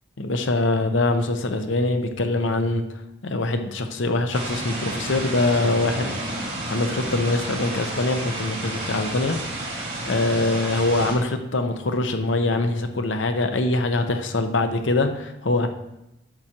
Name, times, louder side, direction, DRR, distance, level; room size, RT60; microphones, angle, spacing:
voice 1, 0.2-2.8 3.2-6.4 6.7-9.4 10.1-15.7, left 2 dB, 70° left, 7 dB, 0.8 m, -23 dB
sound 1, 4.3-11.1, right 1 dB, 30° right, 3.1 m, -31 dB
10.5 x 7.7 x 2.9 m, 0.88 s
head